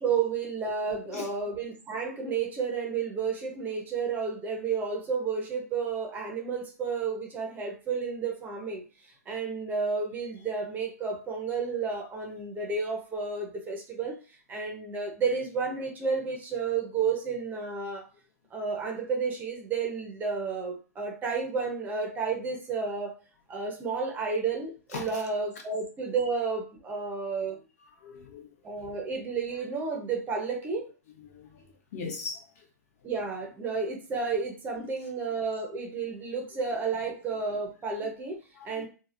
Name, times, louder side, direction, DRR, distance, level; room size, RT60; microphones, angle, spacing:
voice 1, 0.0-14.2 14.5-18.0 18.5-23.2 23.5-27.6 28.6-30.9 33.0-38.8, right 5 dB, 20° right, 0.7 m, -31 dB
voice 2, 28.0-28.5 31.4-32.4 38.6-38.9, left 5 dB, 60° left, 1.0 m, -39 dB
3.3 x 2.4 x 2.5 m
hypercardioid pair, 125°, 9 cm